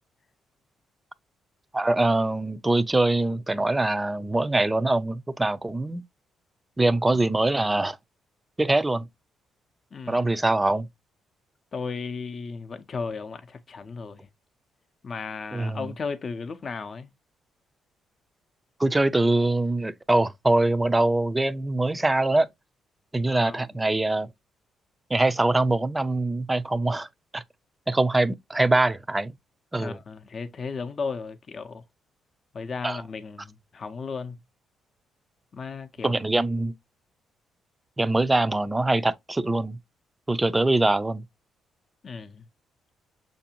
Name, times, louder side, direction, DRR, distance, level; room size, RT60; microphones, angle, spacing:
voice 1, 1.7-6.0 6.8-8.0 8.6-9.1 10.1-10.9 15.5-15.9 18.8-22.5 23.1-24.3 25.1-27.1 27.3-27.4 27.9-29.3 29.7-30.0 32.8-33.0 36.0-36.7 38.0-39.8 40.3-41.2, right 2 dB, 15° right, 0.4 m, -23 dB
voice 2, 9.9-10.2 11.7-14.3 15.0-17.1 23.3-23.6 29.8-31.8 32.5-34.4 35.5-36.2 42.0-42.4, left 5 dB, 45° left, 0.5 m, -35 dB
6.6 x 2.6 x 2.7 m
cardioid pair, 90°, 0 cm